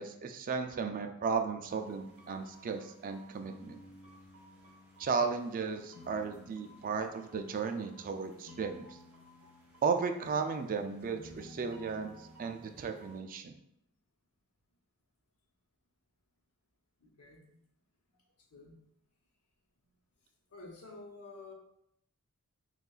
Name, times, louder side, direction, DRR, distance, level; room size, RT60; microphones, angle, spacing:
voice 1, 0.0-3.8 5.0-9.0 9.8-13.6, right 5 dB, 40° right, 6 dB, 0.3 m, -35 dB
sound 1, 1.6-13.2, left 1 dB, 5° right, 1.4 m, -55 dB
voice 2, 17.0-17.6 18.5-18.8 20.5-21.5, left 3 dB, 90° left, 0 dB, 0.9 m, -50 dB
6.4 x 2.4 x 2.3 m, 0.75 s
head